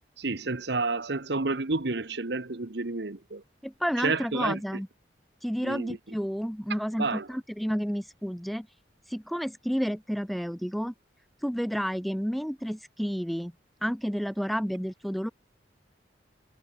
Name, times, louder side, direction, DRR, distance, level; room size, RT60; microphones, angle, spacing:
voice 1, 0.2-3.4 4.0-4.6 5.6-6.0 7.0-7.3, right 3 dB, 60° right, 1.1 m, -30 dB
voice 2, 3.6-4.9 5.4-8.7 9.1-10.9 11.4-13.5 13.8-15.3, equal, ahead, 0.5 m, -30 dB
head